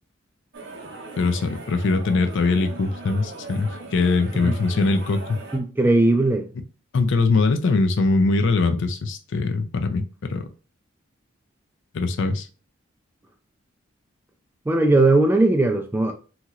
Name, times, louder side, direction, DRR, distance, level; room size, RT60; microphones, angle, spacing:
sound 1, 0.5-5.6, right 2 dB, 60° right, 0.7 m, -39 dB
voice 1, 1.2-5.4 6.9-10.4 11.9-12.5, left 3 dB, 60° left, 0.4 m, -22 dB
voice 2, 5.5-6.5 14.7-16.1, right 2 dB, 10° right, 0.3 m, -18 dB
2.9 x 2.8 x 2.4 m
head